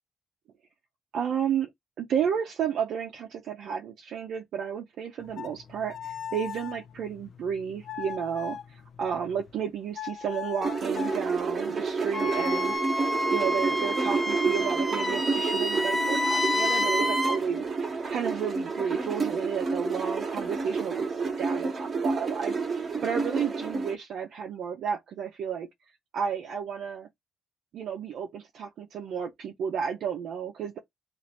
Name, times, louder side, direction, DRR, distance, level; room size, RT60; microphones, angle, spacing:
voice 1, 1.1-1.7 2.0-12.8 13.3-25.7 26.1-27.1 27.7-30.8, right 7 dB, 70° right, 0.6 m, -32 dB
sound 1, 5.2-9.6 9.9-11.2 12.1-12.8, left 8 dB, 60° left, 0.5 m, -40 dB
sound 2, 10.6-23.9, right 4 dB, 40° right, 1.0 m, -30 dB
Wind instrument woodwind instrument, 12.1-17.4, left 1 dB, ahead, 0.8 m, -28 dB
3.1 x 2.5 x 4.1 m
cardioid pair, 90°, 0 cm